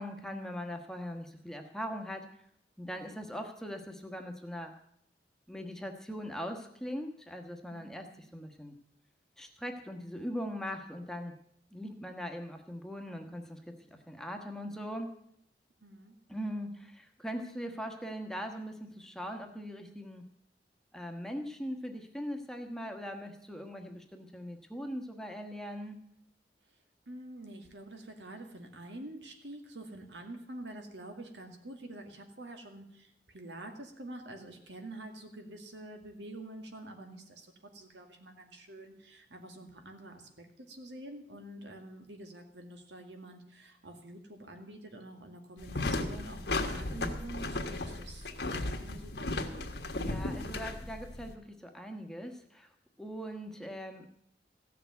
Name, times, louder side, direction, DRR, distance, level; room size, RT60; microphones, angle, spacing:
voice 1, 0.0-2.3 2.8-4.7 5.5-8.8 9.4-11.3 11.7-15.1 16.3-20.2 20.9-26.0 50.0-52.7 53.0-54.1, equal, 5° left, 4 dB, 1.2 m, -40 dB
voice 2, 7.7-8.2 15.8-16.1 27.1-49.7 50.1-50.5, right 1 dB, 90° right, 4 dB, 2.1 m, -47 dB
sound 1, 45.6-51.3, left 2 dB, 70° left, 1.5 m, -35 dB
15.0 x 6.8 x 9.3 m, 0.72 s
head